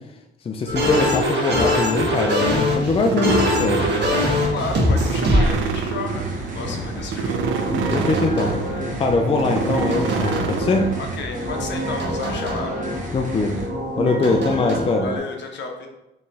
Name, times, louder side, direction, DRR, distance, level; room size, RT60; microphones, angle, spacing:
voice 1, 0.4-3.9 6.7-6.8 7.7-8.6 9.0-10.9 13.1-13.6 14.0-15.1, left 3 dB, 30° left, 3 dB, 0.4 m, -22 dB
sound 1, 0.7-5.6 7.3-9.0 9.2-10.9 11.3-13.1 13.6-15.2, left 1 dB, 60° right, 1.3 m, -23 dB
voice 2, 1.0-1.4 4.1-4.2 4.5-7.5 11.0-12.8 14.4-15.9, left 4 dB, 65° left, 3 dB, 0.8 m, -33 dB
sound 2, 2.1-11.2, right 6 dB, 75° right, 0.4 m, -28 dB
sound 3, 3.2-13.7, right 1 dB, 40° right, 1.1 m, -33 dB
4.3 x 3.2 x 3.5 m, 0.94 s
cardioid pair, 90°, 20 cm